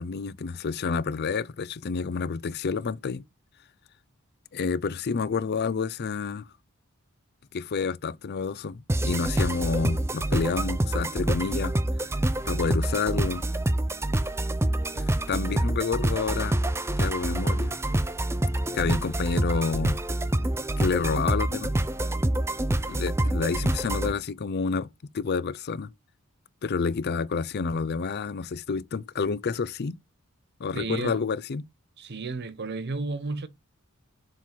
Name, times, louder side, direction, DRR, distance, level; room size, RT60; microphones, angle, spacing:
voice 1, 0.0-3.2 4.5-6.5 7.5-11.7 12.5-13.4 14.9-16.6 17.0-17.8 18.7-20.0 20.8-21.7 22.9-24.9 25.1-25.9 26.6-30.0 30.6-31.7, left 5 dB, 50° left, 0.5 m, -29 dB
sound 1, 8.9-24.1, right 1 dB, 10° right, 0.5 m, -27 dB
voice 2, 30.7-31.2 32.0-33.5, right 3 dB, 50° right, 0.8 m, -32 dB
7.4 x 3.8 x 5.8 m
head